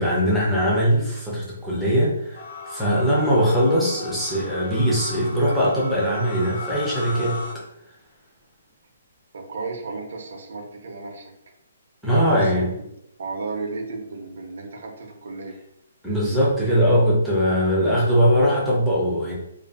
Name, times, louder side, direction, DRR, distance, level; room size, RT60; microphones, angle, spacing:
voice 1, 0.0-7.4 12.0-12.7 16.0-19.4, equal, ahead, -8 dB, 0.5 m, -21 dB
sound 1, 2.3-7.5, left 2 dB, 60° left, 0.9 m, -36 dB
voice 2, 9.3-11.3 12.0-12.5 13.2-15.6, right 3 dB, 55° right, 2 dB, 0.5 m, -34 dB
2.4 x 2.3 x 2.4 m, 0.78 s
hypercardioid pair, 175°, 0 cm